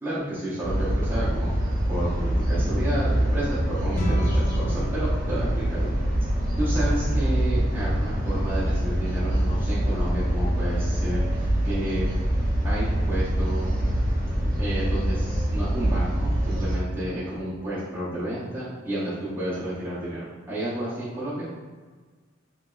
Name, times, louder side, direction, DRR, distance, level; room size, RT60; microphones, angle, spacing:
voice 1, 0.0-1.5 1.9-5.9 6.6-12.0 12.6-13.7 14.6-21.5, right 1 dB, 10° right, -11 dB, 0.5 m, -31 dB
sound 1, 0.6-16.8, right 1 dB, 45° right, 0.7 m, -24 dB
sound 2, 3.9-13.4, left 1 dB, 40° left, 0.4 m, -40 dB
3.4 x 2.9 x 2.2 m, 1.4 s
head